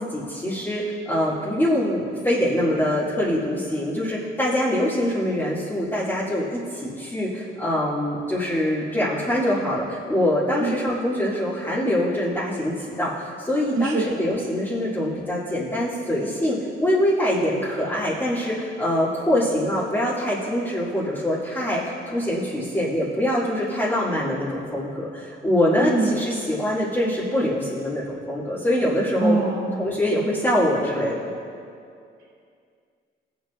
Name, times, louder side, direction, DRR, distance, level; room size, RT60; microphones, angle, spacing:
voice 1, 0.0-29.4 29.8-31.3, left 1 dB, 10° left, -9 dB, 2.2 m, -24 dB
voice 2, 13.7-14.1 25.8-26.1 29.2-29.7, right 3 dB, 80° right, -3 dB, 2.4 m, -23 dB
18.5 x 8.1 x 2.5 m, 2.4 s
cardioid pair, 90°, 20 cm